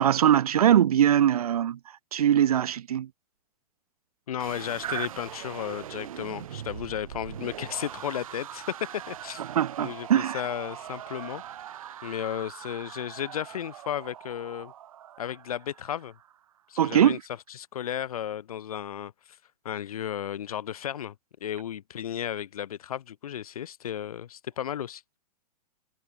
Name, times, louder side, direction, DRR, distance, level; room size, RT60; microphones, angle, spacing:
voice 1, 0.0-1.8 2.1-3.1 4.8-5.1 9.5-10.4 16.8-17.2, right 10 dB, 85° right, 1.4 m, -22 dB
voice 2, 4.3-8.7 9.1-9.4 9.8-11.4 12.0-14.7 15.2-16.1 16.7-17.2 17.5-19.1 19.6-21.1 21.4-25.0, left 10 dB, 75° left, 3.0 m, -34 dB
sound 1, 4.4-16.4, right 10 dB, 70° right, 6.8 m, -42 dB
supercardioid pair, 170°, 19 cm